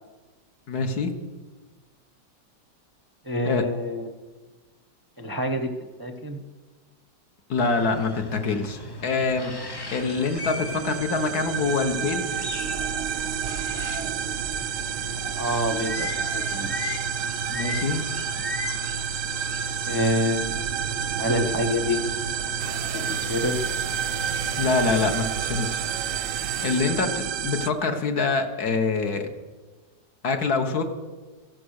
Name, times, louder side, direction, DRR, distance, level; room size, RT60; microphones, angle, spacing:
voice 1, 0.7-1.1 3.4-3.6 7.5-9.5 9.9-12.3 17.5-18.0 24.6-25.8 26.6-29.3 30.2-30.8, left 4 dB, 60° left, 6 dB, 1.7 m, -25 dB
voice 2, 3.2-4.1 5.2-5.7 6.0-6.4 15.4-16.9 19.9-20.5 21.2-22.0 23.1-23.6, left 1 dB, 20° right, 4 dB, 0.5 m, -27 dB
sound 1, 7.6-25.1, equal, 35° left, 0.3 m, -36 dB
sound 2, 9.6-27.7, right 8 dB, 65° right, 0.8 m, -30 dB
sound 3, 22.6-27.0, right 9 dB, 85° right, 1.4 m, -38 dB
14.0 x 11.5 x 6.5 m, 1.3 s
omnidirectional pair, 1.9 m